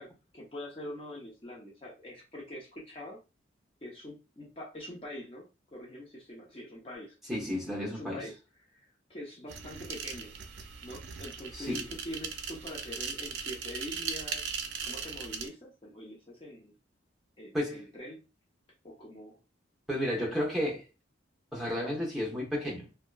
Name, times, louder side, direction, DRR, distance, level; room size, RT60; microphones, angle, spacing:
voice 1, 0.0-3.2 3.8-7.2 7.8-8.4 8.6-10.3 10.8-14.5 14.8-16.7 17.4-18.2 18.8-19.4, left 1 dB, 30° left, 0.6 m, -44 dB
voice 2, 7.3-8.2 11.5-11.8 17.5-17.8 19.9-20.8 21.5-22.9, left 1 dB, ahead, 0.8 m, -32 dB
sound 1, 9.5-15.5, right 6 dB, 65° right, 0.4 m, -39 dB
2.8 x 2.2 x 2.2 m
head